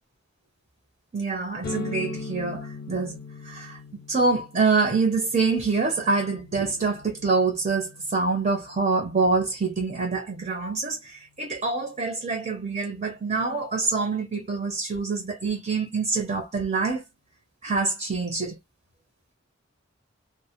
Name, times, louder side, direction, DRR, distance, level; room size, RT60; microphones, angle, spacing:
voice 1, 1.1-3.8 4.1-17.0 17.6-18.6, right 4 dB, 40° right, 0.7 m, -26 dB
sound 1, 1.6-9.2, left 3 dB, 50° left, 0.5 m, -40 dB
2.1 x 2.1 x 2.7 m
head